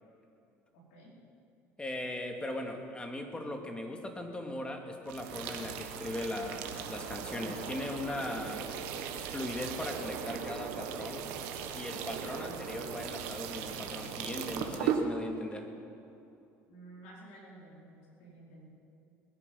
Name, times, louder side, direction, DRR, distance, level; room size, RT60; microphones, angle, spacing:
voice 1, 0.7-1.2 16.7-18.7, right 2 dB, 80° left, -4 dB, 4.5 m, -52 dB
voice 2, 1.8-8.7 9.3-11.3 11.7-15.7, left 1 dB, 15° left, 3 dB, 2.3 m, -39 dB
sound 1, 5.1-15.0, right 7 dB, 80° right, 1.4 m, -38 dB
20.5 x 10.5 x 5.7 m, 2.8 s
supercardioid pair, 80°, 6 cm